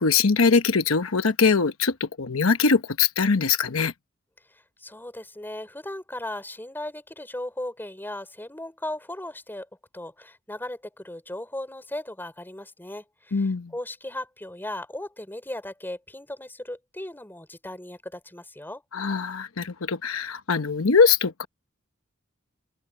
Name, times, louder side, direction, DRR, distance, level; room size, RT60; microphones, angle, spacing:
voice 1, 0.0-3.9 13.3-13.7 18.9-21.5, left 5 dB, 80° left, 1.0 m, -22 dB
voice 2, 4.5-9.7 9.9-18.8, left 1 dB, 10° left, 3.9 m, -37 dB
open air
head